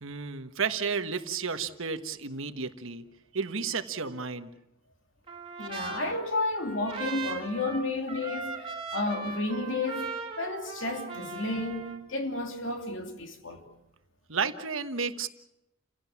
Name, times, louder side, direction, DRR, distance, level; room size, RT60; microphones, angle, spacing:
voice 1, 0.0-3.0 3.3-4.5 14.3-15.3, right 5 dB, 65° right, 1.4 m, -32 dB
Trumpet, 5.3-12.0, right 4 dB, 25° right, 2.5 m, -39 dB
voice 2, 5.6-13.7, left 2 dB, 60° left, 2.9 m, -32 dB
30.0 x 17.0 x 7.4 m
head